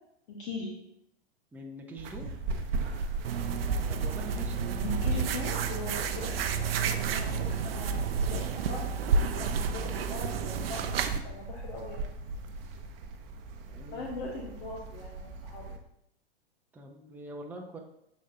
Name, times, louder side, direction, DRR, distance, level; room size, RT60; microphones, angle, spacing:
voice 1, 0.3-0.8 4.8-6.3 6.7-8.9 9.3-12.0 13.8-15.7, left 3 dB, 50° left, -2 dB, 1.5 m, -40 dB
voice 2, 1.5-2.3 3.9-5.3 13.7-14.1 16.7-17.8, right 1 dB, 5° right, 0 dB, 0.7 m, -44 dB
sound 1, 2.0-15.8, right 3 dB, 35° right, 0.9 m, -40 dB
sound 2, 3.2-11.2, right 5 dB, 65° right, 0.7 m, -30 dB
10.5 x 4.1 x 2.8 m, 0.75 s
figure-of-eight pair, 105°, 32 cm